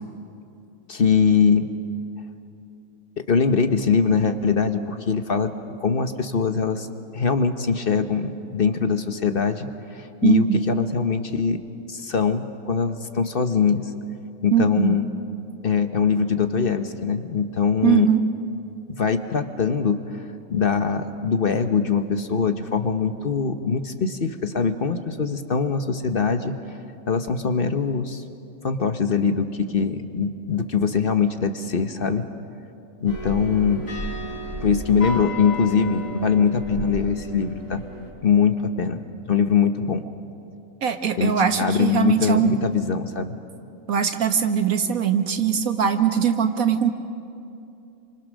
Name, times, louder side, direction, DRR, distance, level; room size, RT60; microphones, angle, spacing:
voice 1, 0.9-1.7 3.3-5.5 5.8-6.9 7.1-11.6 11.9-13.9 14.4-15.1 15.6-18.1 19.0-20.0 20.5-26.6 27.1-28.2 28.6-32.2 33.0-33.8 34.6-37.8 38.2-39.0 39.3-40.0 41.2-43.3, left 6 dB, 45° left, 8 dB, 1.2 m, -22 dB
voice 2, 10.2-10.6 14.5-15.0 17.8-18.2 40.8-42.5 43.9-46.9, right 8 dB, 90° right, 7 dB, 1.8 m, -21 dB
sound 1, 33.1-38.1, equal, 75° left, 4.4 m, -33 dB
28.0 x 25.5 x 6.3 m, 2.6 s
omnidirectional pair, 1.4 m